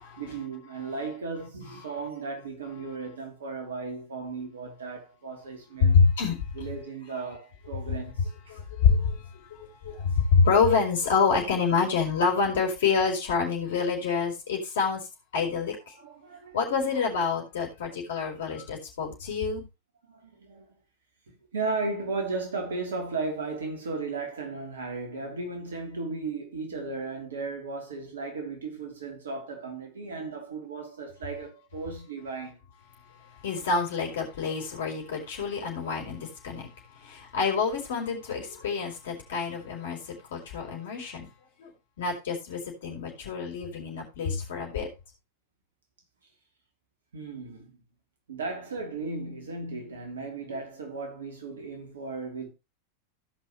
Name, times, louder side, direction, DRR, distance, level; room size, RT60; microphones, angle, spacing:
voice 1, 0.2-6.0 6.5-8.6 16.0-17.3 20.1-20.6 21.5-32.6 47.1-47.8 48.3-52.5, right 3 dB, 65° right, 3.1 m, -35 dB
voice 2, 5.8-6.3 8.5-9.2 9.6-15.0 15.3-15.9 16.5-19.6 33.4-36.7 37.0-41.3 41.6-41.7 42.0-44.9, left 5 dB, 60° left, 4.4 m, -27 dB
16.5 x 5.7 x 3.2 m
figure-of-eight pair, 90°, 0 cm